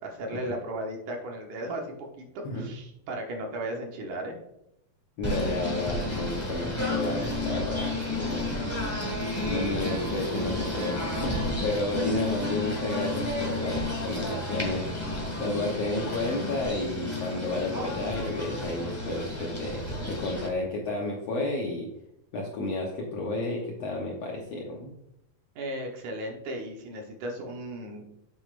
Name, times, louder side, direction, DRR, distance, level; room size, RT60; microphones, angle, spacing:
voice 1, 0.0-4.4 25.6-28.0, right 1 dB, 65° right, 1 dB, 2.3 m, -36 dB
voice 2, 5.2-8.5 9.5-15.0 15.4-21.9 22.3-24.9, left 2 dB, 70° left, -2 dB, 1.6 m, -31 dB
Singing / Bird, 5.2-20.5, left 2 dB, 10° left, 1.2 m, -31 dB
8.6 x 6.9 x 2.5 m, 0.83 s
omnidirectional pair, 4.1 m